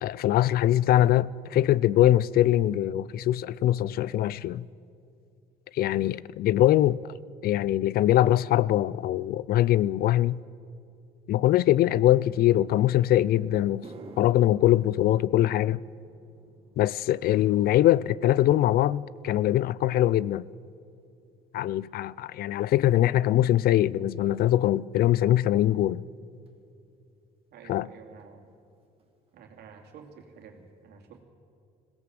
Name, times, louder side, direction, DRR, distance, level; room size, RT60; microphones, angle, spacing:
voice 1, 0.0-4.7 5.7-7.0 7.4-10.4 11.3-13.8 14.2-15.8 16.8-20.4 21.5-26.0 27.7-27.9, left 13 dB, 65° left, 0.5 m, -22 dB
sound 1, 13.6-22.1 22.4-22.9 23.6-23.7 26.5-26.6 28.2-28.3 28.5-28.7 29.0-29.5 29.9-30.0 30.6-30.7, right 3 dB, 35° right, 2.1 m, -54 dB
voice 2, 27.5-28.5 29.3-31.2, right 6 dB, 75° right, 2.7 m, -50 dB
21.0 x 17.0 x 7.8 m
cardioid pair, 110°, 17 cm